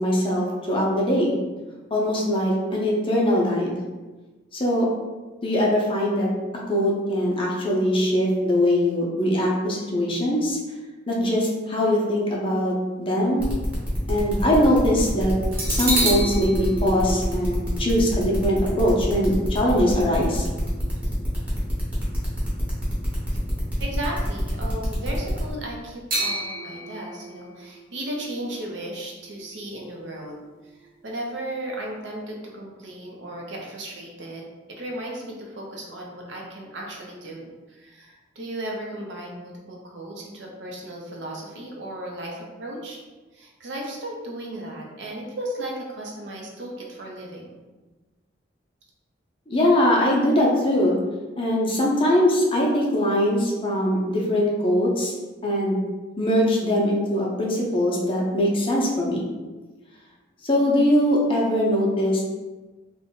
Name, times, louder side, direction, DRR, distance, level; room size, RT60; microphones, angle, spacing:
voice 1, 0.0-1.3 1.9-3.7 4.5-4.9 5.4-6.3 6.7-10.6 11.1-13.5 14.1-15.3 15.7-20.5 49.5-51.0 51.4-55.1 55.4-55.8 56.2-59.2 60.4-62.2, equal, 30° left, -3 dB, 0.6 m, -22 dB
sound 1, 12.6-14.1 14.6-14.7 15.5-22.9 23.3-23.5 26.1-29.9 30.2-30.3, right 1 dB, 50° right, 0.9 m, -32 dB
sound 2, 13.4-25.5, equal, 5° right, 0.8 m, -30 dB
voice 2, 23.8-30.4 30.8-43.0 43.3-47.6, right 1 dB, 75° right, -1 dB, 0.6 m, -35 dB
2.6 x 2.2 x 3.6 m, 1.2 s
head